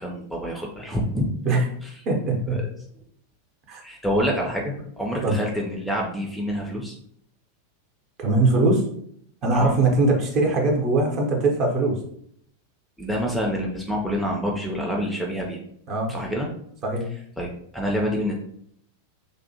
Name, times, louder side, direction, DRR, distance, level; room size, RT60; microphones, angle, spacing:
voice 1, 0.0-1.3 2.5-2.6 3.8-6.9 9.5-9.7 13.0-15.6 16.1-16.5 17.4-17.5 17.7-18.3, equal, ahead, -1 dB, 0.4 m, -27 dB
voice 2, 2.1-2.6 3.7-3.8 5.2-5.4 8.2-8.9 9.4-12.0 15.9-16.1 16.8-17.1, right 2 dB, 35° right, 0 dB, 0.7 m, -21 dB
2.5 x 2.0 x 2.7 m, 0.67 s
figure-of-eight pair, 90°, 0 cm